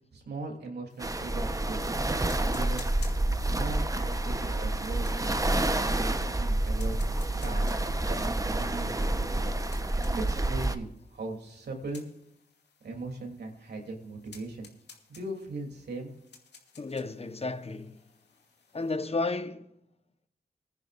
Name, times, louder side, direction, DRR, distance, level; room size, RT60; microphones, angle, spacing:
voice 1, 0.1-1.9 2.5-2.8 3.5-5.4 5.7-6.1 6.4-7.0 7.4-7.7 8.1-9.6 9.9-12.1 12.8-14.7 15.1-16.1, right 2 dB, 75° right, 3.1 m, -39 dB
sound 1, 0.9-19.0, left 5 dB, 80° left, 2.4 m, -56 dB
sound 2, 1.0-10.8, right 2 dB, 20° right, 1.0 m, -28 dB
voice 2, 16.8-18.0 18.7-19.7, left 3 dB, 35° left, 1.1 m, -33 dB
20.5 x 10.5 x 2.6 m
cardioid pair, 55°, 17 cm